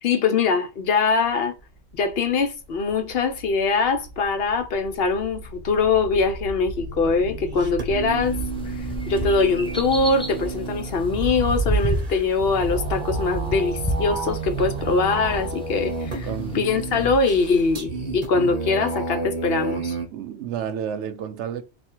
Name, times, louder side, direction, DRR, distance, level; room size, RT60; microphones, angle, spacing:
voice 1, 0.0-1.5 1.9-8.4 8.6-16.3 16.5-20.0, left 4 dB, 65° left, 0.9 m, -22 dB
sound 1, 0.7-14.5, right 1 dB, 30° left, 0.8 m, -40 dB
sound 2, 6.8-20.1, right 3 dB, 50° right, 0.9 m, -32 dB
sound 3, 8.2-17.8, right 1 dB, 10° left, 0.4 m, -30 dB
voice 2, 16.2-16.6 20.1-21.6, right 8 dB, 85° right, 0.9 m, -31 dB
3.4 x 2.3 x 4.3 m
omnidirectional pair, 1.1 m